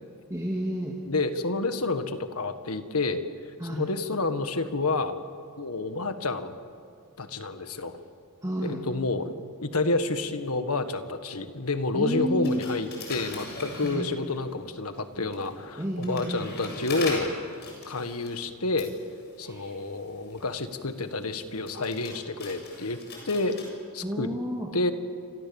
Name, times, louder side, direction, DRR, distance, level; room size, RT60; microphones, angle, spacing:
voice 1, 0.3-1.0 3.6-3.8 8.4-8.8 11.9-12.6 13.8-14.1 15.8-16.5 19.4-19.8 24.0-24.7, equal, 15° right, 0 dB, 2.2 m, -31 dB
voice 2, 1.1-3.2 3.7-5.2 5.6-6.5 7.2-8.0 8.6-9.3 9.6-18.9 19.4-23.0 23.2-23.6 23.9-24.3 24.7-24.9, left 3 dB, 75° left, 9 dB, 1.7 m, -29 dB
sound 1, 12.4-14.5 15.1-23.6, left 3 dB, 50° left, 7.6 m, -41 dB
29.0 x 26.5 x 7.2 m, 2.3 s
head